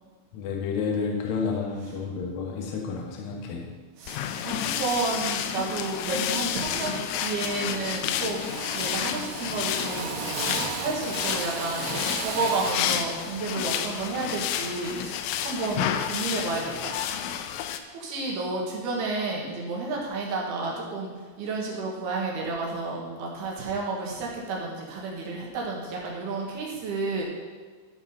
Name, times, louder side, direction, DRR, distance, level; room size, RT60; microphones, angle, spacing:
voice 1, 0.3-3.7, left 5 dB, 70° left, 1 dB, 2.2 m, -30 dB
voice 2, 4.0-8.4 8.7-10.2 10.7-17.0 17.9-21.1 21.4-27.2, right 3 dB, 65° right, -2 dB, 3.1 m, -31 dB
sound 1, 4.1-17.8, left 9 dB, 90° left, 3.2 m, -30 dB
Drill, 6.1-6.3 6.7-7.2 7.5-8.0 8.4-13.0, right 7 dB, 85° right, 3.4 m, -35 dB
12.5 x 4.8 x 5.5 m, 1.5 s
omnidirectional pair, 5.8 m